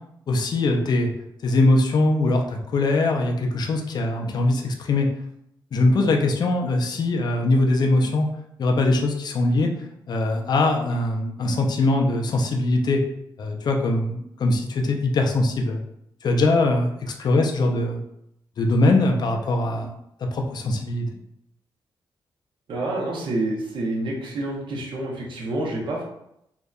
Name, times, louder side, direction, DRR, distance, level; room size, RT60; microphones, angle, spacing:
voice 1, 0.3-1.1 1.4-5.1 5.7-8.3 8.6-9.7 10.1-13.0 13.4-15.8 16.2-18.0 18.6-19.9 20.2-21.1, left 2 dB, 55° left, 3 dB, 0.4 m, -21 dB
voice 2, 22.7-26.0, right 2 dB, 70° right, -2 dB, 0.7 m, -28 dB
2.6 x 2.1 x 2.4 m, 0.78 s
cardioid pair, 80°, 9 cm